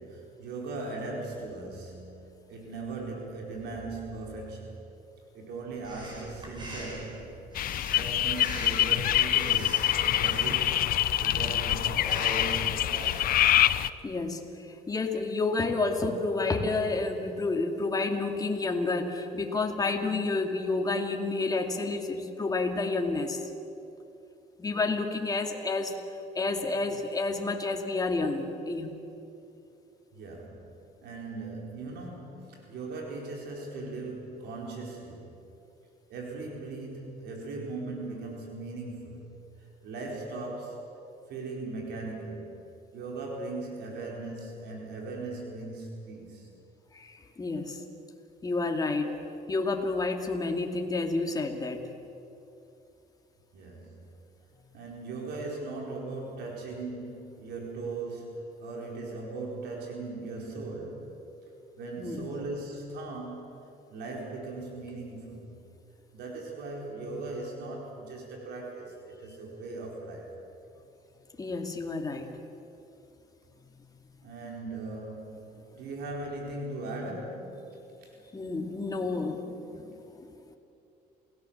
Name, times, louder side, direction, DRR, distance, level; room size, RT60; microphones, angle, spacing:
voice 1, 0.0-4.8 5.3-7.3 7.9-10.9 11.2-13.4 30.1-35.4 36.1-39.3 39.6-40.9 41.3-42.6 42.9-46.5 53.5-54.1 54.7-61.1 61.8-65.6 66.1-70.3 74.2-75.5 75.8-78.1, right 3 dB, 75° right, 0 dB, 4.5 m, -39 dB
Breathing, 5.8-13.5, right 1 dB, 25° right, 6.9 m, -42 dB
sound 1, 7.5-13.9, left 13 dB, 60° left, 0.7 m, -25 dB
voice 2, 14.0-14.4 14.9-23.4 24.6-26.0 26.3-28.9 46.9-47.8 48.4-49.2 49.5-51.9 62.0-62.3 71.4-72.3 78.3-80.3, left 3 dB, 20° left, 3 dB, 2.4 m, -30 dB
28.0 x 17.5 x 7.4 m, 2.8 s
cardioid pair, 110°, 17 cm